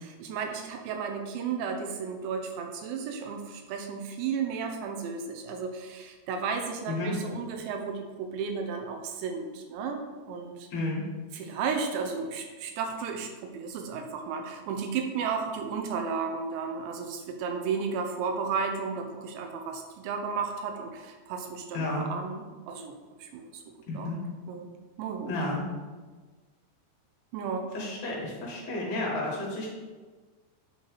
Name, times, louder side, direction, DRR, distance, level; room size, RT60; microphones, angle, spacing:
voice 1, 0.0-10.7 11.3-23.0 23.2-23.6 24.0-24.1 24.5-24.7 25.0-25.3 27.3-27.7, right 5 dB, 85° right, 4 dB, 2.8 m, -33 dB
voice 2, 6.9-7.2 10.7-11.0 21.7-22.0 23.9-24.2 25.3-25.6 27.7-29.7, left 2 dB, 60° left, -4 dB, 2.2 m, -31 dB
8.1 x 3.2 x 4.4 m, 1.4 s
omnidirectional pair, 5.0 m